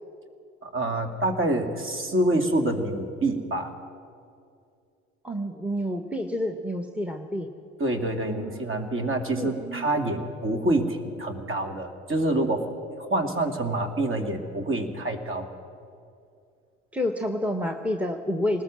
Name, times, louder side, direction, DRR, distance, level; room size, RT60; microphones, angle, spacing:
voice 1, 0.6-3.7 7.8-12.7 13.0-15.5, right 1 dB, 35° right, 6 dB, 2.5 m, -26 dB
voice 2, 5.2-7.5 8.2-8.9 9.4-9.9 10.2-10.3 16.9-18.6, left 1 dB, 5° right, 6 dB, 1.3 m, -29 dB
19.5 x 19.5 x 7.7 m, 2.5 s
figure-of-eight pair, 50°, 36 cm